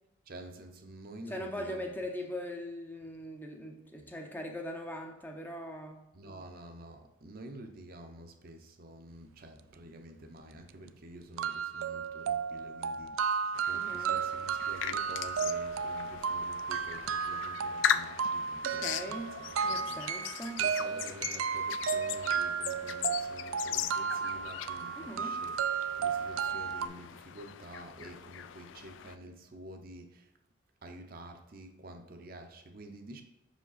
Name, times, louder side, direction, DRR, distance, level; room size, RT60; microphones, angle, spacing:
voice 1, 0.3-2.0 4.0-4.1 6.1-20.2 20.6-25.6 26.0-30.3 30.8-33.2, right 1 dB, 45° right, 5 dB, 0.6 m, -49 dB
voice 2, 1.3-6.0 13.7-14.1 18.6-19.4 19.6-20.6 25.0-25.4, equal, 10° left, 2 dB, 0.5 m, -40 dB
sound 1, 10.4-10.5 10.9-11.0 11.4-26.9, right 6 dB, 85° right, 0.3 m, -33 dB
sound 2, 13.5-29.2, left 9 dB, 70° left, 0.3 m, -39 dB
5.8 x 5.0 x 4.0 m, 0.90 s
head